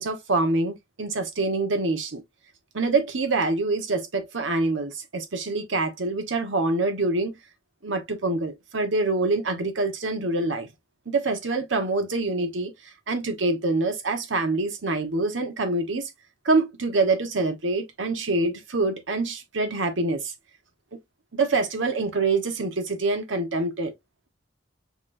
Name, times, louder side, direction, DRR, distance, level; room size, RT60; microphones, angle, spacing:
voice 1, 0.0-2.2 2.7-7.3 7.8-10.7 11.1-12.7 13.1-16.0 16.4-20.3 21.3-23.9, right 3 dB, 80° right, 1.1 m, -25 dB
5.9 x 3.0 x 2.5 m
head